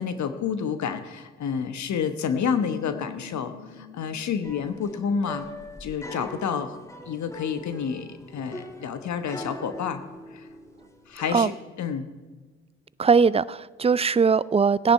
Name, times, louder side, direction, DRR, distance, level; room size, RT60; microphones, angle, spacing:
voice 1, 0.0-5.4 5.8-6.8 7.0-10.0 10.3-10.5 11.1-11.5 11.8-12.1, left 7 dB, 60° left, 1.2 m, -29 dB
sound 1, 2.5-5.6, left 7 dB, 85° left, 1.7 m, -45 dB
sound 2, 4.4-11.4, equal, 10° left, 2.2 m, -42 dB
voice 2, 13.0-14.9, right 5 dB, 20° right, 0.4 m, -20 dB
17.0 x 10.0 x 5.7 m
hypercardioid pair, 50°, 32 cm